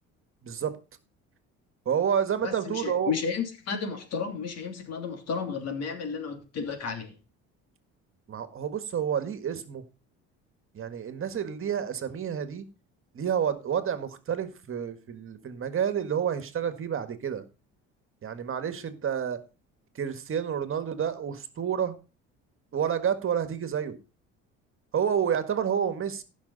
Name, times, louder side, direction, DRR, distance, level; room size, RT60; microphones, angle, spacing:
voice 1, 0.4-0.7 1.8-3.1 8.3-9.8 10.7-12.7 13.1-17.4 18.2-19.4 19.9-21.9 22.7-24.0 24.9-26.2, right 8 dB, 45° right, 1.8 m, -29 dB
voice 2, 2.4-7.1, left 5 dB, 55° left, 3.0 m, -32 dB
15.0 x 6.3 x 4.1 m
supercardioid pair, 85°, 30 cm